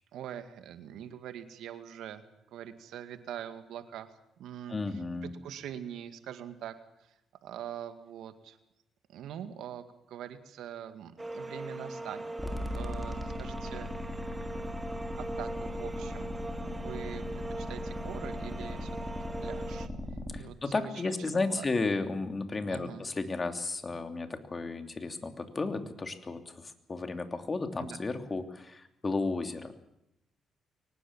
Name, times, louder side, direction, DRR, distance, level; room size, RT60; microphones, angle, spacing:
voice 1, 0.1-6.7 7.0-8.6 9.1-13.9 15.2-17.3 17.6-18.9 19.2-19.9 20.4-21.7 22.7-23.0 27.8-28.0, right 10 dB, 80° right, 9 dB, 2.1 m, -44 dB
voice 2, 4.7-5.3 20.3-29.7, left 3 dB, 30° left, 7 dB, 3.0 m, -33 dB
sound 1, 11.2-19.9, right 2 dB, 10° right, 1.7 m, -41 dB
sound 2, 12.4-20.4, left 1 dB, 5° left, 3.8 m, -38 dB
23.0 x 19.5 x 7.4 m, 0.82 s
cardioid pair, 90°, 0 cm